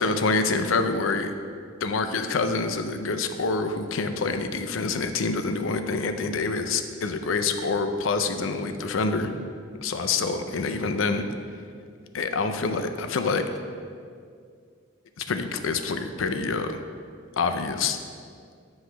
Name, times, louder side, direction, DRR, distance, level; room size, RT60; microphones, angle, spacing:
voice 1, 0.0-1.3 1.8-9.3 9.8-11.2 12.1-13.5 15.2-16.8 17.4-18.0, left 4 dB, 80° left, 7 dB, 0.5 m, -26 dB
7.9 x 3.1 x 5.6 m, 2.2 s
head